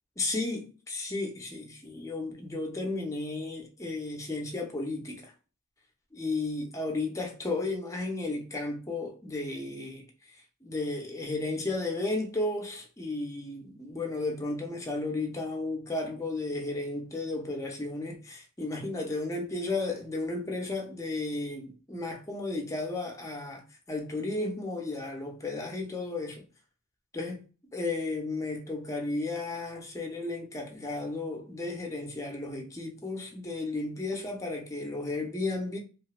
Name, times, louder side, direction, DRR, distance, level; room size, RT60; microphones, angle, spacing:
voice 1, 0.2-5.3 6.1-10.0 10.6-26.5 27.1-27.4 27.7-35.8, left 2 dB, 15° left, 0.4 m, -34 dB
2.8 x 2.1 x 2.3 m
head